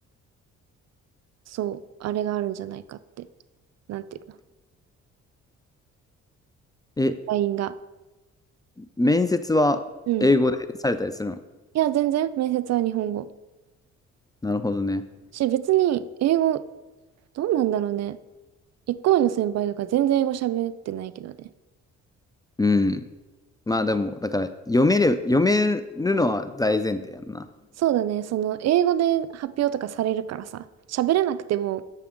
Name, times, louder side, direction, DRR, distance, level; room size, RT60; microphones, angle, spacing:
voice 1, 1.5-3.3 3.9-4.2 7.3-7.7 10.1-10.3 11.7-13.3 15.3-16.6 17.4-18.2 18.9-21.5 27.8-31.8, right 12 dB, 60° right, 15 dB, 0.4 m, -24 dB
voice 2, 8.8-9.8 10.2-10.6 10.8-11.4 14.4-15.0 22.6-23.1 23.7-27.5, left 2 dB, 15° left, 11 dB, 0.3 m, -22 dB
8.4 x 6.8 x 3.7 m, 1.1 s
cardioid pair, 90°, 30 cm